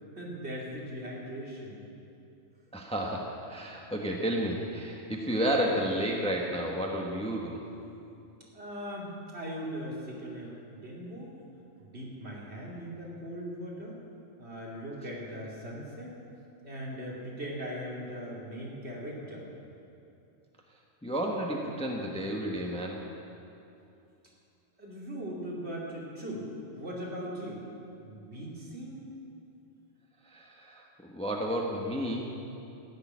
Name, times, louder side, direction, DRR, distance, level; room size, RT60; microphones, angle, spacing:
voice 1, 0.1-1.8 8.5-11.3 11.8-14.0 14.4-16.1 16.6-19.5 24.8-27.6 28.0-29.1, equal, 55° right, -4 dB, 3.0 m, -39 dB
voice 2, 2.7-7.6 21.0-23.0 30.3-32.3, equal, 5° left, -1 dB, 1.1 m, -31 dB
15.5 x 6.8 x 9.5 m, 2.7 s
omnidirectional pair, 1.3 m